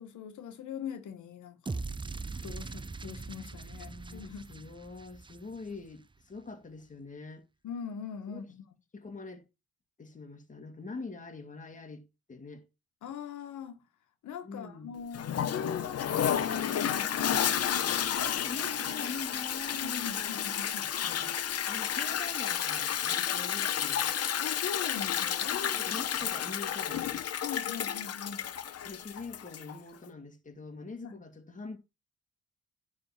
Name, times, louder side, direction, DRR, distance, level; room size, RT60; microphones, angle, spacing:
voice 1, 0.0-1.8 2.4-4.5 7.6-8.7 13.0-13.8 14.2-18.4 19.7-21.3 24.4-26.2 27.4-28.4 31.0-31.2, left 7 dB, 75° left, 1.5 m, -42 dB
sound 1, 1.7-5.9, right 3 dB, 15° right, 0.7 m, -41 dB
voice 2, 3.7-7.4 8.3-8.4 8.9-9.5 10.0-12.6 14.4-14.9 18.2-20.3 21.7-24.1 25.5-27.1 28.8-31.8, left 3 dB, 25° left, 2.0 m, -44 dB
Toilet flush, 15.1-29.8, left 9 dB, 55° left, 1.0 m, -31 dB
10.0 x 3.9 x 7.3 m
cardioid pair, 90°, 30 cm